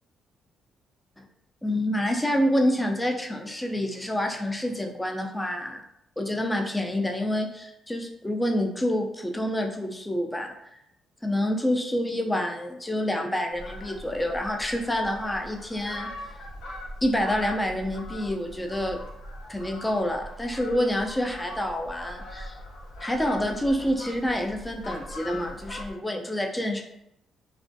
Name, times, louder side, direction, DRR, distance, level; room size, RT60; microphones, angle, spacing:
voice 1, 1.6-5.8 6.2-10.5 11.2-16.1 17.0-19.0 19.5-22.5 23.0-26.8, left 1 dB, 10° left, 3 dB, 0.3 m, -27 dB
Fowl, 13.5-25.9, left 1 dB, 80° left, 0.6 m, -41 dB
2.4 x 2.1 x 2.5 m, 0.80 s
cardioid pair, 90°, 0 cm